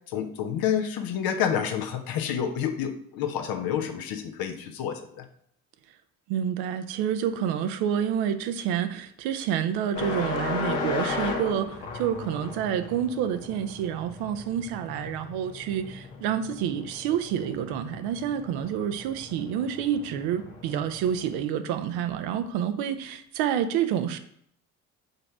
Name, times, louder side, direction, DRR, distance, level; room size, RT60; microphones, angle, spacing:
voice 1, 0.1-5.3, left 8 dB, 60° left, 6 dB, 1.0 m, -29 dB
voice 2, 6.3-24.2, right 9 dB, 65° right, 9 dB, 0.8 m, -28 dB
sound 1, 9.9-21.4, left 4 dB, 75° left, 1.5 m, -36 dB
5.4 x 5.3 x 5.9 m, 0.68 s
hypercardioid pair, 50°, 41 cm